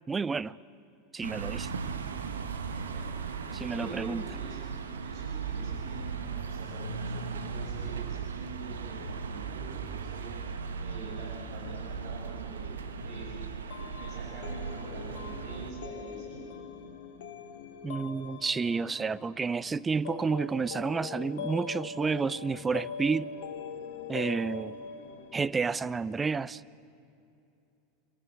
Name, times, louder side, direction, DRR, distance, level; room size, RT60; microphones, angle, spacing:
voice 1, 0.1-0.6 1.1-1.7 3.5-4.2 17.8-23.3 24.1-24.8 25.3-26.6, right 4 dB, 20° right, 0.6 m, -30 dB
sound 1, 1.2-15.7, right 5 dB, 80° right, 1.6 m, -37 dB
voice 2, 2.7-4.7 5.0-10.3 10.8-13.4 13.9-16.4, right 2 dB, 50° right, 7.6 m, -45 dB
sound 2, 13.7-26.3, left 5 dB, 65° left, 2.1 m, -42 dB
27.0 x 23.0 x 7.9 m
figure-of-eight pair, 85°, 0 cm